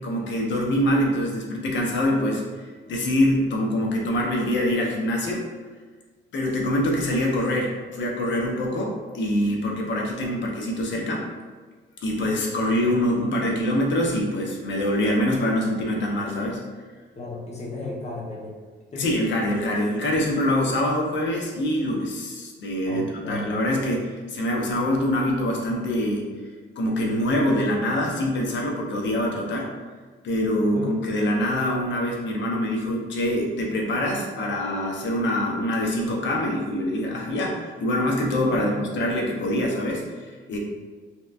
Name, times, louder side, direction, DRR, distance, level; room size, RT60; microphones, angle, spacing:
voice 1, 0.0-5.4 6.3-11.2 12.0-16.6 18.9-26.3 26.8-29.7 30.2-40.6, left 1 dB, 65° left, -1 dB, 0.7 m, -24 dB
voice 2, 17.1-18.6 18.9-19.0 22.9-23.6 30.7-31.0 38.5-38.8, left 2 dB, 35° left, -2 dB, 0.8 m, -35 dB
3.2 x 2.9 x 2.4 m, 1.4 s
cardioid pair, 90°, 20 cm